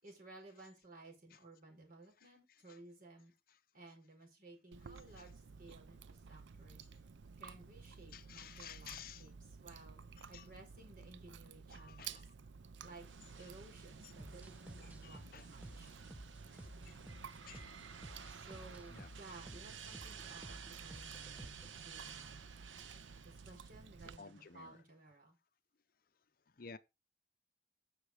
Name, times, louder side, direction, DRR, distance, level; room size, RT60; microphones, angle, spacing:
voice 1, 0.0-3.3 3.7-6.8 7.4-10.0 10.3-12.2 12.8-13.0 13.3-16.1 18.3-22.5 23.2-25.4, right 2 dB, 45° right, 4.9 m, -57 dB
Chewing mastication, 4.7-24.2, right 5 dB, 75° right, 0.5 m, -54 dB
voice 2, 8.1-9.3 10.2-10.5 11.7-12.3 13.4-13.5 14.8-15.5 15.8-15.9 16.5-16.6 16.9-17.0 17.4-17.6 18.1-18.2 18.9-19.1 24.2-24.8 26.6-26.8, left 7 dB, 50° left, 0.6 m, -54 dB
sound 1, 12.8-24.8, right 7 dB, 90° right, 1.1 m, -54 dB
sound 2, 14.2-21.9, equal, 10° right, 0.9 m, -55 dB
9.7 x 6.6 x 4.9 m
head